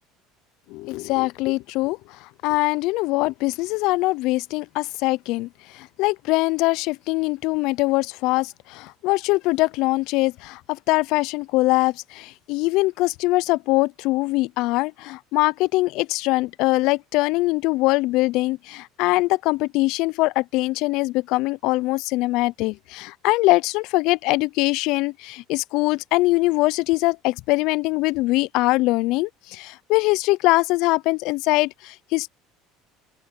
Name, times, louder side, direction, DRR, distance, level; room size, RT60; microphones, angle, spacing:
voice 1, 0.7-2.0 2.4-5.5 5.7-32.3, left 21 dB, 70° left, 0.4 m, -22 dB
open air
supercardioid pair, 105°, 0 cm